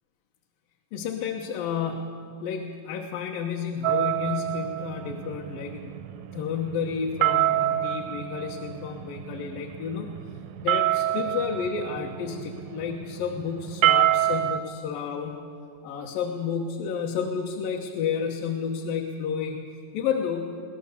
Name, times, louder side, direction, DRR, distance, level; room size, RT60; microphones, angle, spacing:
voice 1, 0.9-6.0 6.3-10.2 10.6-15.4 15.8-20.6, left 6 dB, 75° left, 1 dB, 2.8 m, -31 dB
sound 1, 3.8-14.6, right 14 dB, 80° right, 1.9 m, -27 dB
23.0 x 17.5 x 7.0 m, 2.3 s
omnidirectional pair, 4.1 m